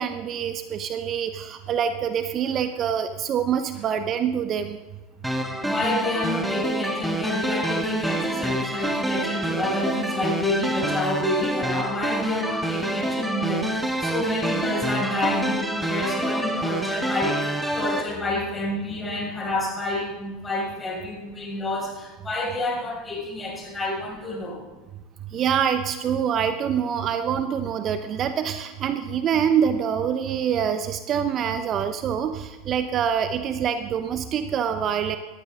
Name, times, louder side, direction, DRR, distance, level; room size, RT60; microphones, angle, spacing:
voice 1, 0.0-4.8 25.3-35.2, right 8 dB, 40° right, 9 dB, 0.8 m, -25 dB
sound 1, 5.2-18.0, right 1 dB, 5° right, 1.5 m, -27 dB
voice 2, 5.3-24.6, left 2 dB, 20° left, -2 dB, 5.9 m, -28 dB
17.5 x 13.0 x 3.8 m, 1.2 s
hypercardioid pair, 90°, 0 cm